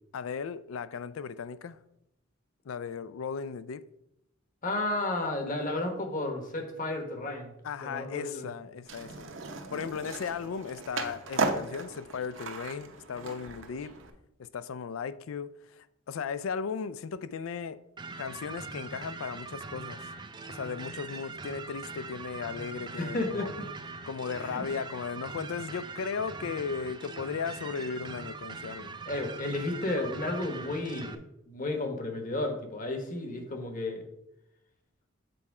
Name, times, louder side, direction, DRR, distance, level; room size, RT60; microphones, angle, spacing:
voice 1, 0.1-1.8 2.7-3.8 7.6-9.3 9.7-14.0 14.4-17.8 18.2-20.1 20.5-23.5 24.1-29.0, left 6 dB, 80° left, 0.4 m, -36 dB
voice 2, 4.6-7.5 7.8-8.5 23.0-23.6 24.4-24.6 29.1-31.2 31.5-34.0, left 2 dB, 40° left, 1.2 m, -32 dB
Skateboard, 8.9-14.1, right 3 dB, 65° right, 0.9 m, -36 dB
sound 1, 18.0-31.2, right 4 dB, 20° right, 0.4 m, -42 dB
7.7 x 4.3 x 4.8 m
head